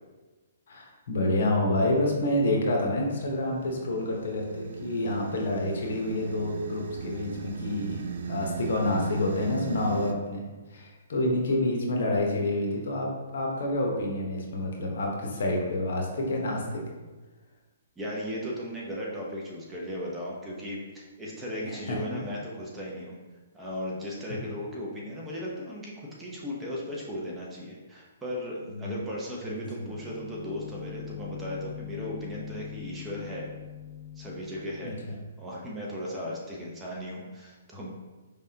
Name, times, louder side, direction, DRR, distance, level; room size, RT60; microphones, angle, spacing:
voice 1, 0.7-10.4 10.7-16.6 21.6-22.2 28.7-29.0 29.4-29.9 34.8-35.1, left 1 dB, 65° left, 0 dB, 1.1 m, -28 dB
sound 1, 3.0-10.1, right 5 dB, 65° right, 0.4 m, -38 dB
voice 2, 18.0-23.1 23.5-33.5 34.2-37.9, equal, 10° right, -4 dB, 0.9 m, -36 dB
sound 2, 29.9-35.2, left 11 dB, 25° left, 0.4 m, -42 dB
4.9 x 3.5 x 2.8 m, 1.3 s
hypercardioid pair, 140°, 0 cm